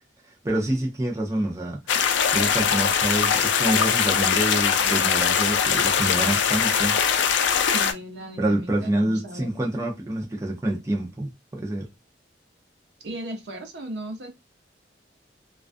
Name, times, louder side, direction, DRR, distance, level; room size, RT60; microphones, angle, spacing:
voice 1, 0.4-7.0 8.4-11.9, right 1 dB, 15° right, 0.5 m, -27 dB
sound 1, 1.9-7.9, left 7 dB, 80° left, 0.4 m, -21 dB
voice 2, 7.7-9.5 13.0-14.3, right 1 dB, 65° right, 0.7 m, -36 dB
2.4 x 2.2 x 2.5 m
head